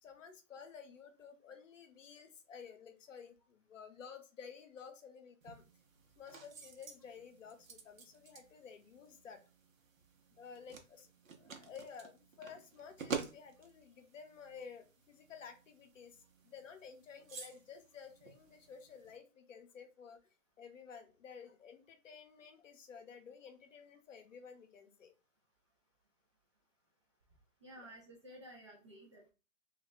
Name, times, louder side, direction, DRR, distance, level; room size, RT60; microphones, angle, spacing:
voice 1, 0.0-5.6 6.2-9.4 10.4-20.2 20.6-25.1 27.8-27.9, left 6 dB, 65° left, 6 dB, 0.8 m, -53 dB
sound 1, 5.4-19.2, right 5 dB, 65° right, 0.8 m, -50 dB
voice 2, 27.6-29.3, right 1 dB, 25° right, -1 dB, 0.4 m, -54 dB
2.4 x 2.2 x 3.8 m, 0.33 s
figure-of-eight pair, 120°, 42 cm